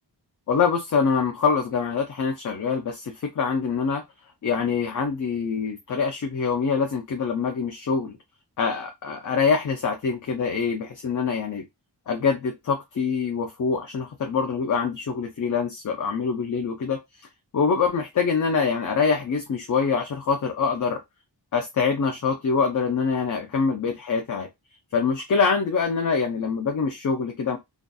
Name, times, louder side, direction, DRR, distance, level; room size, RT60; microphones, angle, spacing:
voice 1, 0.5-4.0 4.4-8.2 8.6-11.6 12.1-17.0 17.5-21.0 21.5-24.5 24.9-27.6, left 5 dB, 45° left, 0.5 m, -25 dB
2.6 x 2.4 x 2.2 m
wide cardioid pair, 80°, 44 cm